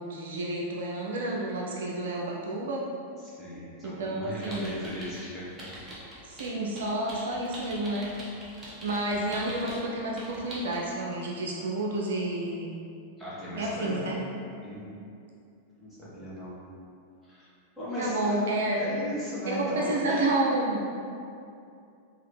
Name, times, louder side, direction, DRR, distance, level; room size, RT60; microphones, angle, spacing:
voice 1, 0.0-2.9 3.8-4.9 6.2-8.1 8.8-12.8 13.5-14.2 18.0-19.0 19.5-20.8, right 1 dB, 60° right, -2 dB, 0.4 m, -30 dB
voice 2, 3.2-5.5 13.2-14.1 14.6-15.0 15.8-16.5 17.2-17.5 17.8-18.4 18.8-20.2, equal, 5° left, -11 dB, 1.5 m, -37 dB
sound 1, 4.4-5.2 5.6-9.8 10.2-10.8, equal, 15° right, 1.0 m, -43 dB
3.7 x 2.9 x 3.3 m, 2.5 s
figure-of-eight pair, 90°, 0 cm